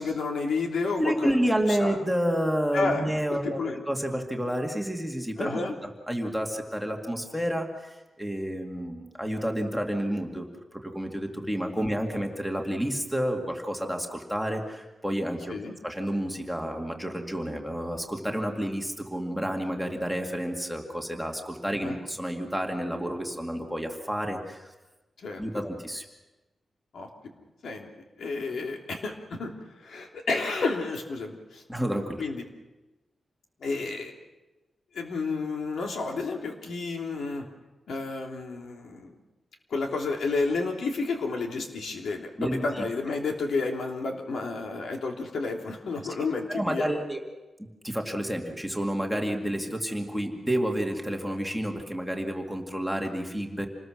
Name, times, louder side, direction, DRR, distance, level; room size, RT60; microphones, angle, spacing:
voice 1, 0.0-2.0 2.7-3.8 5.4-5.7 15.5-15.7 21.8-22.0 25.2-25.6 26.9-27.1 27.6-27.9 28.2-29.5 29.8-31.6 32.2-32.4 33.6-34.1 34.9-37.4 37.9-39.2 39.7-46.8, left 3 dB, 80° left, 2 dB, 3.1 m, -31 dB
voice 2, 1.0-5.6 6.1-10.5 10.7-15.5 15.8-24.7 25.4-26.0 31.7-32.2 42.4-42.9 46.5-47.2 47.6-53.7, equal, ahead, 2 dB, 2.2 m, -30 dB
27.5 x 20.0 x 6.3 m, 1.1 s
wide cardioid pair, 150°, 0 cm